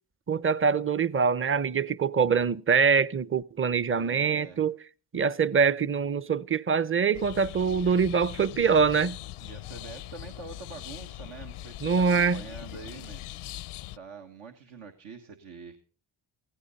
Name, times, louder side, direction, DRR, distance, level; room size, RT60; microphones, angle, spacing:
voice 1, 0.3-4.8 5.1-9.2 11.8-12.4, right 6 dB, 25° right, 0.7 m, -24 dB
voice 2, 3.9-4.6 9.4-13.4 13.9-15.8, right 5 dB, 75° right, 1.6 m, -45 dB
sound 1, 7.1-14.0, left 15 dB, 80° left, 0.6 m, -41 dB
16.0 x 15.5 x 4.2 m
supercardioid pair, 50°, 49 cm